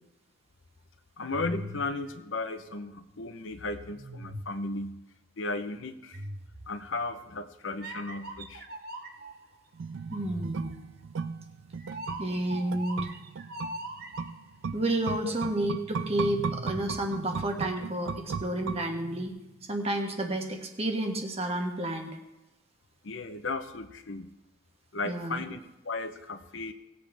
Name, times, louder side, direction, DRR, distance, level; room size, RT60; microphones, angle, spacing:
voice 1, 1.2-5.0 5.4-6.2 6.7-8.6 15.2-15.3 23.0-24.3 24.9-26.7, left 3 dB, 75° left, 8 dB, 0.8 m, -35 dB
sound 1, 1.3-3.1 3.9-4.8 6.1-7.1 7.8-9.4 10.1-14.6 15.9-17.8 18.9-19.3, right 1 dB, 50° right, 1.2 m, -42 dB
sound 2, 9.8-19.3 19.6-19.7, right 5 dB, 75° right, 0.4 m, -37 dB
voice 2, 10.1-10.7 12.2-13.1 14.7-19.3 19.7-22.2 25.0-25.4, right 1 dB, 30° right, 3 dB, 1.3 m, -30 dB
18.5 x 8.0 x 3.5 m, 0.97 s
head